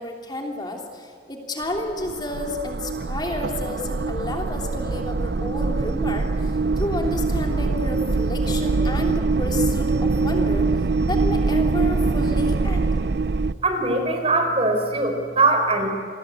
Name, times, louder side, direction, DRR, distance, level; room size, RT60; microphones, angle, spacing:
voice 1, 0.0-10.7 11.0-13.0, left 1 dB, 25° left, 2 dB, 3.1 m, -31 dB
sound 1, 1.6-13.5, right 3 dB, 65° right, 0.6 m, -23 dB
voice 2, 13.6-15.9, right 2 dB, 35° right, 5 dB, 4.3 m, -21 dB
28.0 x 22.5 x 8.4 m, 2.2 s
head